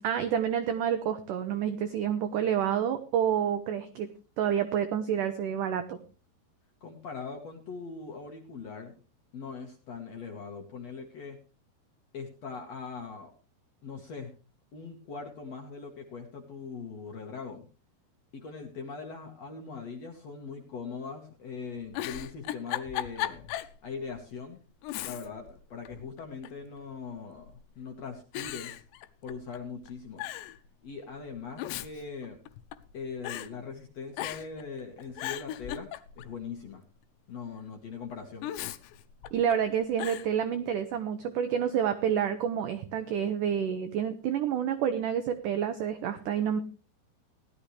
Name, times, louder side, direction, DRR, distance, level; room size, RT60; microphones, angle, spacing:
voice 1, 0.0-4.1 4.4-6.0 39.3-46.6, right 8 dB, 85° right, 9 dB, 1.8 m, -29 dB
voice 2, 6.8-8.9 9.3-11.4 12.1-13.3 13.8-14.3 14.7-17.7 18.3-23.5 23.8-24.6 25.0-28.8 29.2-30.2 30.8-32.4 32.9-35.9 36.2-36.8 37.3-38.5, left 5 dB, 60° left, 3 dB, 1.9 m, -41 dB
Giggle, 21.9-23.8 24.2-24.3 24.8-25.5 25.9-26.7 27.4-27.8 28.3-29.6 29.8-29.9 30.2-30.6 31.4-32.9 33.2-33.5 34.1-34.6 35.0-36.4 38.4-39.5 40.0-40.3, left 13 dB, 90° left, 2.9 m, -37 dB
17.0 x 12.0 x 3.2 m, 0.34 s
omnidirectional pair, 4.9 m